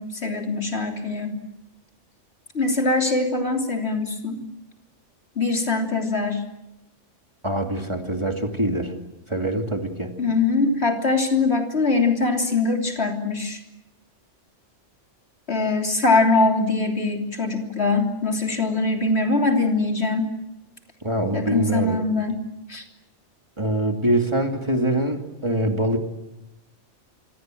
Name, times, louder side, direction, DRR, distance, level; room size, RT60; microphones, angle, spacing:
voice 1, 0.0-1.4 2.5-4.4 5.4-6.4 10.2-13.6 15.5-20.3 21.3-22.4 22.7-22.8, left 3 dB, 55° left, 3 dB, 3.5 m, -22 dB
voice 2, 7.4-8.9 9.3-10.1 21.0-22.0 23.6-26.0, right 1 dB, 25° right, 4 dB, 2.6 m, -24 dB
25.5 x 25.5 x 7.8 m, 0.94 s
omnidirectional pair, 1.3 m